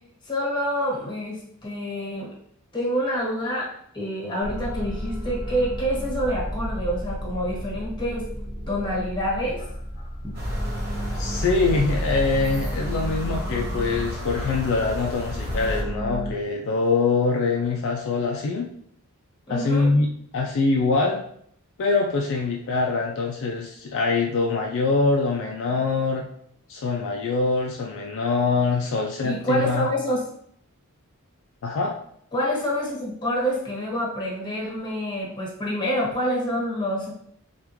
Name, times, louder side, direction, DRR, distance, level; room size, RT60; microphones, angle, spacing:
voice 1, 0.2-2.3 2.7-8.3 8.7-9.6 10.2-10.3 19.5-19.9 29.2-30.2 32.3-37.1, equal, 20° left, -4 dB, 1.2 m, -27 dB
sound 1, 4.4-16.3, equal, 20° right, 1.1 m, -32 dB
sound 2, 10.3-15.8, equal, 45° right, 0.7 m, -33 dB
voice 2, 11.1-18.7 19.5-20.1 20.3-21.2 21.8-26.2 26.7-29.9 31.6-32.0, left 3 dB, 60° left, 0 dB, 0.4 m, -24 dB
3.4 x 2.4 x 3.0 m, 0.67 s
head